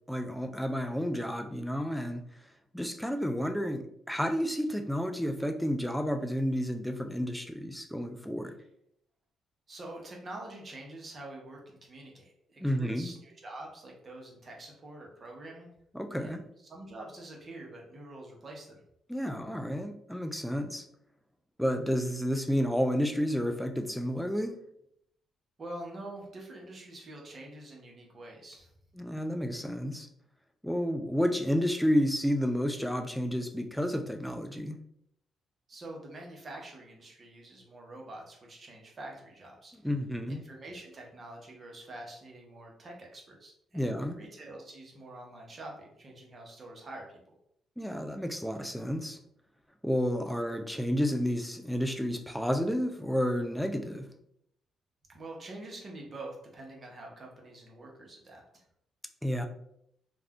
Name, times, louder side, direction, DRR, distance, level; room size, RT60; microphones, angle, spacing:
voice 1, 0.1-2.2 2.7-8.5 12.6-13.1 15.9-16.4 19.1-20.9 21.6-24.6 29.0-30.1 30.6-34.8 39.8-40.4 43.7-44.2 47.8-49.2 49.8-54.1 59.2-59.5, equal, ahead, 6 dB, 0.4 m, -31 dB
voice 2, 9.7-15.7 16.2-18.8 25.6-28.7 35.7-39.9 40.3-43.9 44.2-47.3 55.1-58.6, right 2 dB, 40° right, -1 dB, 0.8 m, -46 dB
2.4 x 2.2 x 3.5 m, 0.73 s
cardioid pair, 90°, 0 cm